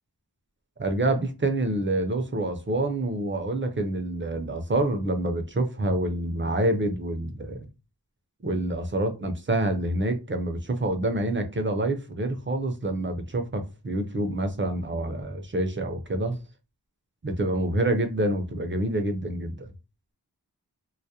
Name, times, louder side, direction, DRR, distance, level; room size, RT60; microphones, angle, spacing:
voice 1, 0.8-7.7 8.4-16.4 17.2-19.7, right 1 dB, 30° right, 0.5 m, -27 dB
2.3 x 2.0 x 2.7 m
wide cardioid pair, 45°, 41 cm